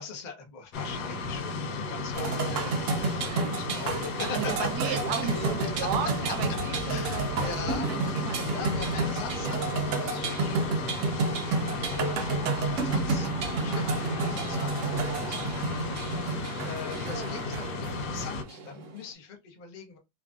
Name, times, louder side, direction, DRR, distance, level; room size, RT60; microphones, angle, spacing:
voice 1, 0.0-4.5 4.8-5.0 5.7-5.8 6.9-7.9 8.5-13.3 13.6-20.0, left 5 dB, 60° left, 0.4 m, -42 dB
sound 1, 0.7-18.4, left 3 dB, 85° left, 1.3 m, -34 dB
sound 2, 2.1-19.0, right 4 dB, 85° right, 0.6 m, -31 dB
voice 2, 3.1-3.9 4.2-8.5 9.1-9.8 10.4-10.7 16.2-16.4, right 8 dB, 70° right, 1.1 m, -36 dB
3.1 x 2.5 x 2.3 m
omnidirectional pair, 1.9 m